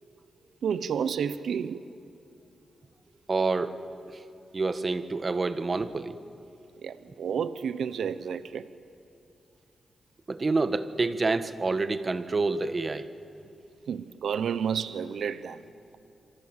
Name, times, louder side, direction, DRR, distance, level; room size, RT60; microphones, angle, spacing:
voice 1, 0.6-1.8 6.8-8.6 13.9-15.6, right 7 dB, 80° right, 14 dB, 0.8 m, -30 dB
voice 2, 3.3-4.2 4.5-6.2 10.3-13.1, right 3 dB, 35° right, 11 dB, 1.4 m, -28 dB
27.5 x 24.5 x 8.2 m, 2.7 s
cardioid pair, 70°, 0 cm